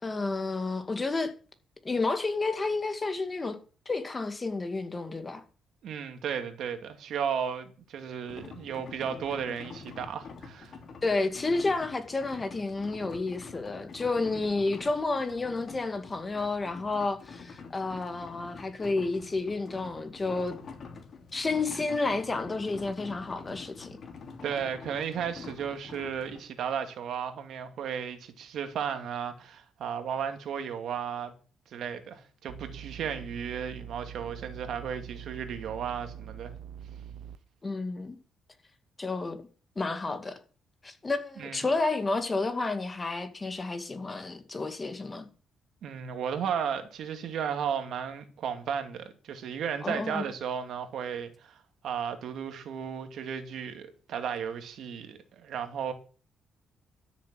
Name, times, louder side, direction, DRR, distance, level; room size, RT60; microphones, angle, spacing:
voice 1, 0.0-1.3 1.8-3.6 3.9-5.4 11.0-20.6 21.3-24.0 37.6-38.2 39.0-39.4 39.8-40.4 40.8-45.3 49.8-50.3, left 3 dB, 25° left, 2.2 m, -31 dB
voice 2, 5.8-10.8 24.4-31.3 31.7-36.5 41.4-41.6 45.8-51.6 51.8-55.9, right 7 dB, 70° right, 2.3 m, -34 dB
sound 1, 8.3-26.4, left 4 dB, 50° left, 3.0 m, -46 dB
sound 2, 32.5-37.4, right 9 dB, 90° right, 0.9 m, -44 dB
13.0 x 7.3 x 7.6 m
cardioid pair, 100°, 0 cm